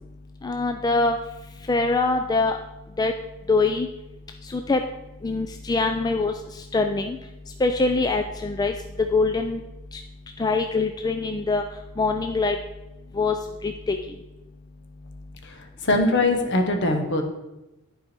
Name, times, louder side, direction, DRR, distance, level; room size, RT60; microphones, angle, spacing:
voice 1, 0.4-1.2 1.7-2.6 3.0-3.1 3.5-3.9 4.5-4.8 5.2-6.3 6.7-7.2 7.6-8.7 9.1-9.6 10.4-11.6 12.0-12.6 13.2-13.3 13.9-14.0, left 3 dB, 20° left, 5 dB, 0.3 m, -23 dB
voice 2, 15.4-17.2, left 2 dB, 55° left, 4 dB, 1.1 m, -22 dB
10.5 x 4.7 x 4.4 m, 0.99 s
head